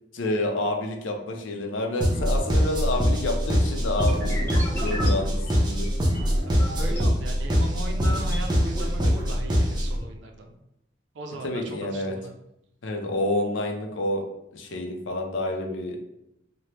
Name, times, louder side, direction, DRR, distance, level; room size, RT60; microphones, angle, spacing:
voice 1, 0.1-4.5 4.8-5.9 11.4-12.1 12.8-14.2 14.5-16.0, left 1 dB, 90° left, 2 dB, 0.5 m, -29 dB
sound 1, 2.0-10.0, equal, 25° right, 0.5 m, -23 dB
sound 2, 4.0-7.0 7.5-8.5, equal, 10° left, 0.9 m, -36 dB
voice 2, 6.4-10.5 11.1-12.4, right 2 dB, 75° right, 3 dB, 0.5 m, -38 dB
3.2 x 2.1 x 2.8 m, 0.82 s
head